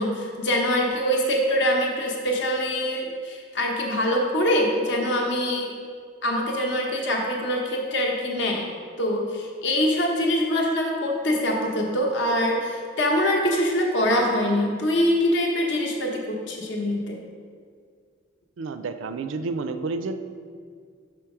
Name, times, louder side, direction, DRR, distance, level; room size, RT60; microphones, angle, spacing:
voice 1, 0.0-5.7 6.2-8.6 9.0-17.2, equal, 70° left, 0 dB, 0.8 m, -24 dB
voice 2, 18.6-20.2, right 3 dB, 85° right, 10 dB, 0.4 m, -30 dB
6.0 x 4.5 x 4.8 m, 2.1 s
head